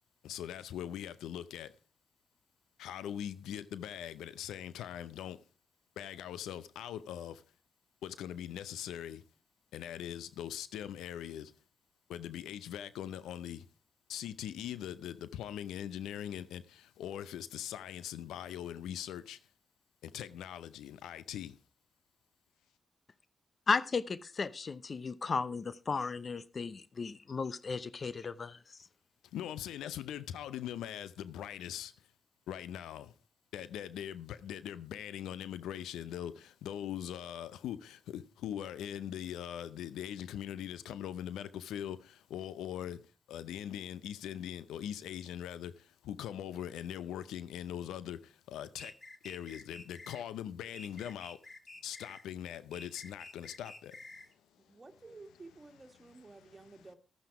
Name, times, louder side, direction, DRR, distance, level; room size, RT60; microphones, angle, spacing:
voice 1, 0.2-1.7 2.8-5.4 6.0-7.4 8.0-9.2 9.7-11.5 12.1-13.7 14.1-19.4 20.0-21.6 29.3-31.9 32.5-33.1 33.5-43.0 43.3-48.9 49.2-51.4 51.8-54.0 56.4-56.5, left 10 dB, 85° left, 0.6 m, -41 dB
voice 2, 23.7-28.6, left 4 dB, 50° left, 0.8 m, -35 dB
sound 1, 48.8-50.2 50.7-52.3 52.7-54.3, left 2 dB, 35° left, 1.9 m, -50 dB
voice 3, 54.6-57.0, right 3 dB, 35° right, 2.2 m, -53 dB
12.0 x 9.2 x 4.8 m
supercardioid pair, 40°, 0 cm